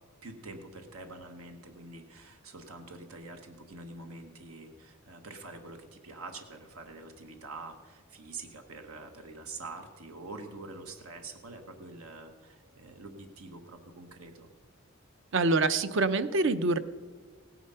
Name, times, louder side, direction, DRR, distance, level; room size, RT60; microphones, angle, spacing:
voice 1, 0.0-14.5, right 3 dB, 90° right, 5 dB, 1.3 m, -46 dB
voice 2, 15.3-16.8, right 3 dB, 60° right, 13 dB, 0.7 m, -25 dB
17.0 x 10.0 x 5.6 m, 1.5 s
head